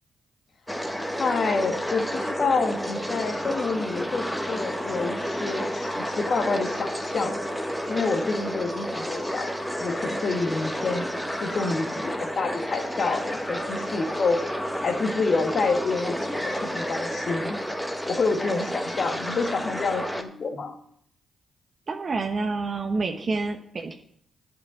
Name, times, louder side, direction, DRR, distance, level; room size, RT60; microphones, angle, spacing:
sound 1, 0.7-20.2, equal, 5° left, 1.3 m, -31 dB
voice 1, 1.2-7.4 7.9-9.5 9.8-11.1 11.4-14.4 14.8-17.6 18.1-20.7, left 4 dB, 50° left, 6 dB, 1.5 m, -28 dB
voice 2, 21.9-23.9, right 3 dB, 45° right, 4 dB, 1.0 m, -28 dB
9.5 x 5.5 x 7.2 m, 0.68 s
hypercardioid pair, 45°, 0 cm